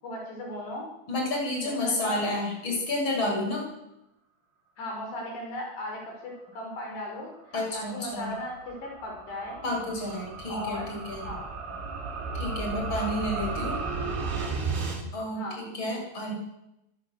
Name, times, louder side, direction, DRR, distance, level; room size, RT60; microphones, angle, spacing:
voice 1, 0.0-0.9 1.8-2.3 4.8-9.6 10.5-11.0 11.2-11.5 15.4-15.6, left 1 dB, 65° left, 0 dB, 7.4 m, -37 dB
voice 2, 1.1-3.7 7.5-8.3 9.6-11.2 12.3-13.8 15.1-16.3, left 1 dB, 25° left, 1 dB, 8.2 m, -30 dB
sound 1, 7.2-15.0, right 4 dB, 60° right, 6.2 m, -34 dB
25.5 x 18.0 x 8.1 m, 0.88 s
omnidirectional pair, 5.3 m